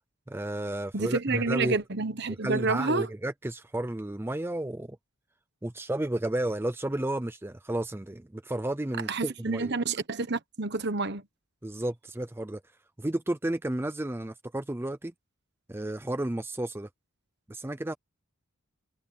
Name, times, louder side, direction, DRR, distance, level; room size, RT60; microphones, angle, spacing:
voice 1, 0.3-1.8 2.4-5.0 5.6-9.7 11.6-12.6 13.0-15.1 15.7-16.9 17.5-17.9, right 1 dB, 10° right, 0.5 m, -32 dB
voice 2, 0.9-3.1 9.1-11.2, right 3 dB, 50° right, 1.3 m, -29 dB
head